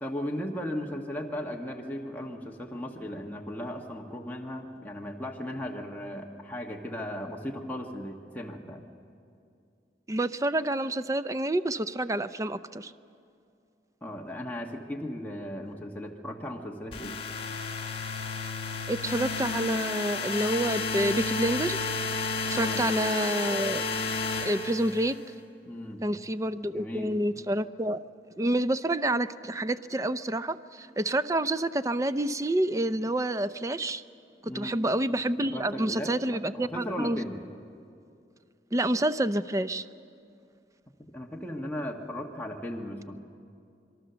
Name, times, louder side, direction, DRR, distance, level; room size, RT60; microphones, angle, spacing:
voice 1, 0.0-8.8 14.0-17.1 22.5-22.8 25.6-26.0 26.7-27.1 34.5-34.8 35.4-37.4 41.0-43.2, equal, 10° left, 0 dB, 1.3 m, -37 dB
voice 2, 10.1-12.9 18.9-21.8 22.5-23.8 24.4-25.2 26.0-28.0 28.4-34.0 34.5-37.3 38.7-39.9, right 1 dB, 20° right, 13 dB, 0.5 m, -28 dB
sound 1, 16.9-25.2, left 4 dB, 30° left, 1.8 m, -32 dB
26.0 x 22.5 x 6.9 m, 2.5 s
head